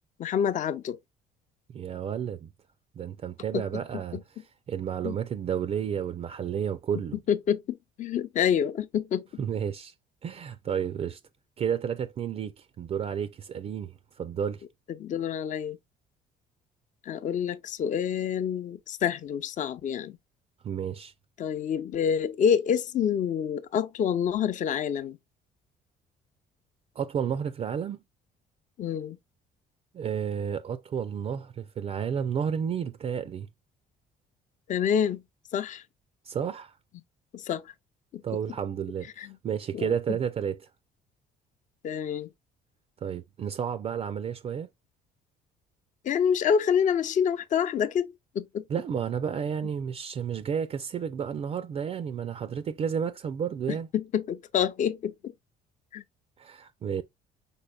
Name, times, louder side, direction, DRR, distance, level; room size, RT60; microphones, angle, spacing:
voice 1, 0.2-1.0 3.5-3.6 5.0-5.1 7.3-9.2 15.0-15.8 17.1-20.2 21.4-25.2 28.8-29.2 34.7-35.2 35.5-35.8 37.3-37.6 38.1-38.2 39.2-39.3 39.7-40.2 41.8-42.3 46.0-48.1 48.3-48.6 53.7-55.1 55.9-56.0, left 8 dB, 50° left, 0.6 m, -27 dB
voice 2, 1.7-2.5 3.0-4.2 4.7-7.2 9.4-9.9 10.2-11.2 11.6-14.6 20.6-21.1 27.0-28.0 29.9-33.5 36.3-36.8 38.2-40.6 43.0-44.7 48.7-53.9 56.4-57.0, right 8 dB, 40° right, 0.4 m, -31 dB
5.4 x 4.0 x 2.2 m
cardioid pair, 110°, 17 cm